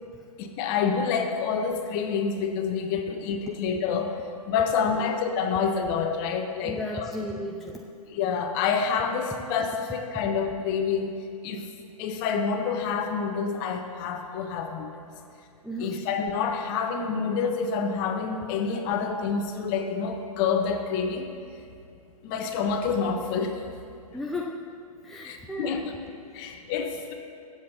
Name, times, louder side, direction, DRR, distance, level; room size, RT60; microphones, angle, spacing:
voice 1, 0.4-4.1 4.5-7.1 8.1-11.1 11.4-11.6 12.0-14.9 15.8-21.3 22.2-23.5 25.2-25.8 26.3-27.1, left 6 dB, 35° left, 4 dB, 1.2 m, -27 dB
voice 2, 6.6-7.8 15.6-16.1 24.1-24.6 25.0-25.9, left 1 dB, ahead, -2 dB, 0.4 m, -34 dB
22.0 x 7.6 x 2.9 m, 2.4 s
hypercardioid pair, 120°, 19 cm